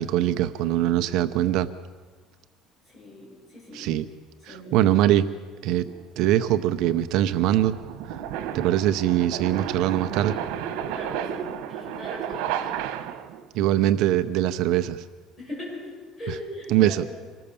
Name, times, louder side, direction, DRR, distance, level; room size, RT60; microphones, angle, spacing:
voice 1, 0.0-1.7 3.7-4.1 4.4-5.3 5.6-5.9 6.2-7.8 8.1-8.2 8.5-10.3 13.5-15.0 16.7-17.0, right 12 dB, 55° right, 10 dB, 0.7 m, -22 dB
voice 2, 2.9-3.9 4.5-4.8 10.9-12.7 15.4-17.2, left 1 dB, 20° left, -3 dB, 7.5 m, -40 dB
sound 1, 5.8-13.4, right 9 dB, 85° right, 1.5 m, -32 dB
26.0 x 20.0 x 7.0 m, 1.4 s
cardioid pair, 180°, 0 cm